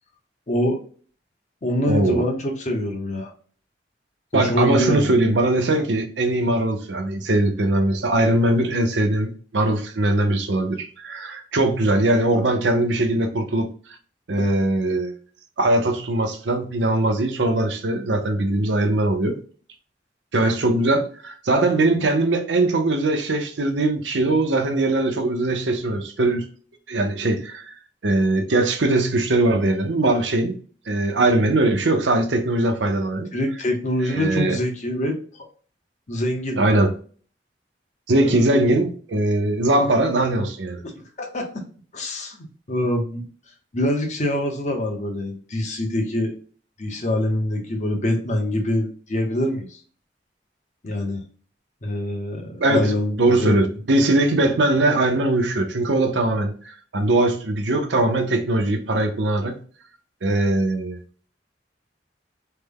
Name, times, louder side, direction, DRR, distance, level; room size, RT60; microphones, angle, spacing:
voice 1, 0.5-0.8 1.6-3.3 4.3-5.2 12.9-13.1 33.3-35.5 36.1-36.6 38.2-38.6 40.8-40.9 41.2-41.5 41.9-43.3 43.7-46.3 46.8-49.8 50.8-51.2 51.8-53.5, left 1 dB, 40° left, 0.8 m, -25 dB
voice 2, 1.9-2.3 4.3-13.7 14.3-15.1 15.6-19.4 20.3-26.5 26.9-27.7 28.0-30.5 30.9-33.3 34.0-34.6 36.6-36.9 38.1-40.8 52.6-52.9 53.2-59.6 60.2-61.0, right 2 dB, 80° right, 0.7 m, -21 dB
3.3 x 2.1 x 3.5 m
head